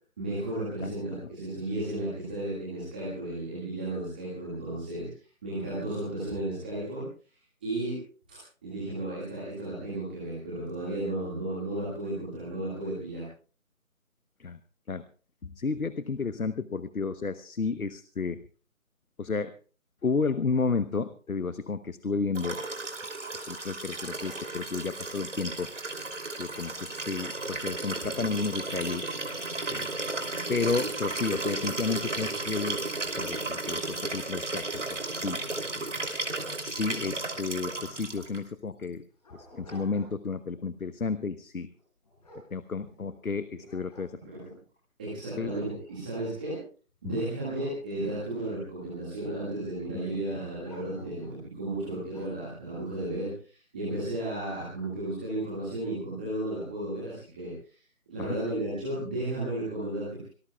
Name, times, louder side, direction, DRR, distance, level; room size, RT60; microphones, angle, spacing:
voice 1, 0.2-5.1 5.4-7.0 7.6-8.0 8.3-13.2 44.3-44.5 45.0-46.6 47.0-57.8 58.1-60.3, right 1 dB, 5° right, -9 dB, 1.9 m, -34 dB
voice 2, 15.6-18.4 19.2-19.5 20.0-22.6 23.5-25.7 26.4-29.1 29.7-29.9 30.5-32.8 33.2-34.6 35.1-35.9 36.6-39.0 39.5-41.7 42.5-44.2 45.4-45.5 47.0-47.2 49.9-50.0 58.2-58.3, left 4 dB, 85° left, 13 dB, 1.1 m, -32 dB
Liquid, 22.3-38.4 39.7-39.8, right 2 dB, 60° right, 3.1 m, -34 dB
Dog, 38.8-40.4 40.8-41.1 41.7-43.2 43.6-44.6 45.2-45.3 45.7-48.1 48.7-49.3 50.6-51.4 52.1-52.5, equal, 30° left, 7.6 m, -53 dB
25.5 x 18.5 x 2.3 m, 0.38 s
figure-of-eight pair, 170°, 41 cm